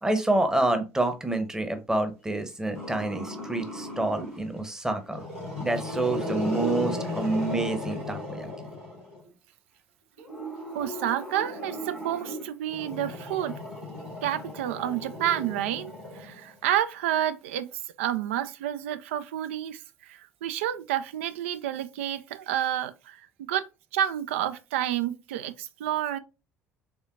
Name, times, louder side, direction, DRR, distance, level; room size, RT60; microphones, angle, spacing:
voice 1, 0.0-5.2 5.6-8.5, right 2 dB, 10° right, 0.9 m, -28 dB
Growling, 2.7-4.5 5.0-9.2 10.2-16.7, left 1 dB, 85° right, 2.0 m, -36 dB
voice 2, 10.7-13.5 14.2-26.2, right 11 dB, 65° right, 0.4 m, -30 dB
4.4 x 3.3 x 2.3 m
figure-of-eight pair, 55°, 7 cm